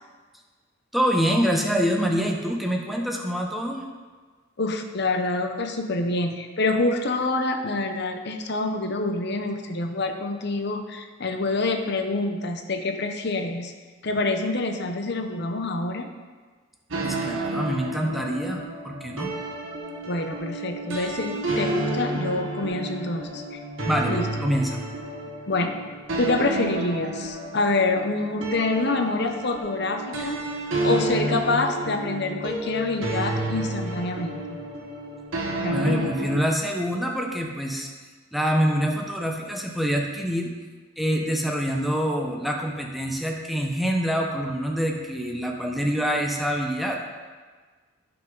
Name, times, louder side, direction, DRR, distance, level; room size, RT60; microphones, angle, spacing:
voice 1, 0.9-3.8 17.0-19.3 23.8-24.8 35.7-37.9 38.3-40.5 41.0-47.0, equal, ahead, 0 dB, 1.0 m, -25 dB
voice 2, 4.6-13.7 14.0-16.1 20.1-23.6 24.1-24.2 25.5-25.7 26.2-30.4 30.8-34.6 35.6-36.1, left 2 dB, 55° left, 5 dB, 0.9 m, -26 dB
sound 1, 16.9-36.4, right 2 dB, 75° right, 1.4 m, -31 dB
14.0 x 6.0 x 4.0 m, 1.4 s
head